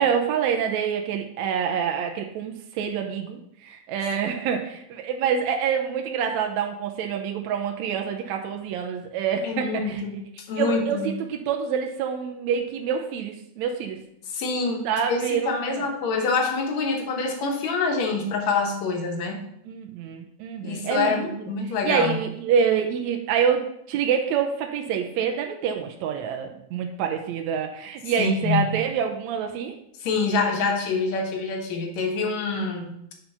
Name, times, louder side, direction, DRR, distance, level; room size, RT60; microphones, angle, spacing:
voice 1, 0.0-10.0 10.6-14.0 14.8-16.0 19.7-21.4 21.8-29.8, right 7 dB, 80° right, 3 dB, 2.0 m, -26 dB
voice 2, 9.4-10.2 10.5-11.1 14.3-19.4 20.6-22.2 28.2-28.8 30.0-33.1, left 4 dB, 70° left, 3 dB, 2.5 m, -26 dB
8.9 x 4.4 x 5.6 m, 0.74 s
omnidirectional pair, 3.3 m